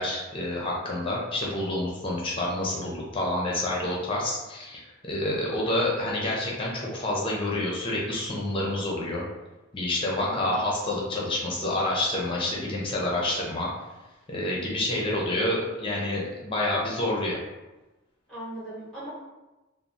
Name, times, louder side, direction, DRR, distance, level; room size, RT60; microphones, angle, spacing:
voice 1, 0.0-9.2 9.7-13.7 14.3-17.4, left 1 dB, 25° left, -3 dB, 0.6 m, -28 dB
voice 2, 10.1-10.6 18.3-19.1, right 1 dB, 5° left, -11 dB, 1.0 m, -39 dB
3.1 x 2.1 x 2.6 m, 1.1 s
head